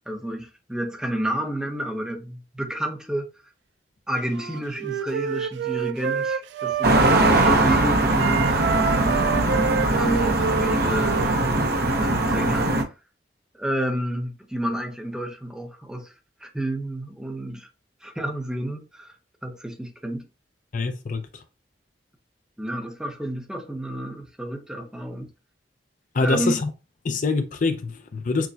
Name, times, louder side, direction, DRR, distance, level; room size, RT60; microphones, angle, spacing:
voice 1, 0.1-3.3 4.1-9.2 9.9-11.6 11.9-12.7 13.5-16.1 16.4-17.7 18.0-19.1 19.4-20.2 22.6-25.3 26.2-26.5, right 1 dB, 5° right, 0.7 m, -30 dB
Wind instrument woodwind instrument, 4.3-7.7 8.1-11.8, right 7 dB, 80° right, 0.3 m, -29 dB
sound 1, 6.8-12.8, right 2 dB, 60° right, 0.8 m, -21 dB
voice 2, 20.7-21.4 26.1-26.7 27.0-28.5, left 3 dB, 45° left, 0.4 m, -25 dB
6.2 x 2.2 x 2.7 m
head